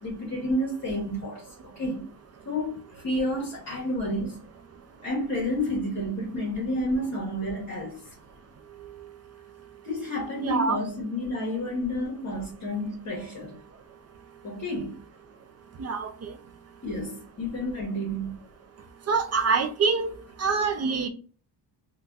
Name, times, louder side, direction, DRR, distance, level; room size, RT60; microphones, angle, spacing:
voice 1, 0.0-2.0 2.4-4.4 5.0-8.1 9.8-13.6 14.4-15.0 16.8-18.4, left 1 dB, 40° left, 1.0 m, -30 dB
voice 2, 10.4-10.8 15.8-16.3 19.1-20.1 20.4-21.1, right 4 dB, 35° right, 0.4 m, -25 dB
4.0 x 2.3 x 2.3 m
cardioid pair, 155°, 44 cm